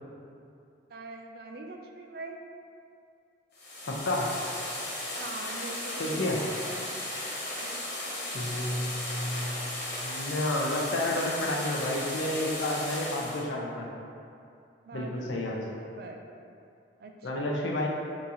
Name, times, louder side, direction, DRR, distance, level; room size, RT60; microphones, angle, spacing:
voice 1, 0.9-2.4 5.2-6.9 7.6-8.8 14.8-16.2 17.0-17.5, right 3 dB, 55° right, 2 dB, 0.4 m, -43 dB
sound 1, 3.5-13.4, left 1 dB, 55° left, 1.0 m, -36 dB
voice 2, 3.9-4.4 6.0-6.4 8.3-9.6 10.0-13.9 14.9-15.6 17.2-17.9, left 1 dB, 85° left, -1 dB, 0.6 m, -30 dB
4.1 x 2.9 x 3.7 m, 2.5 s
head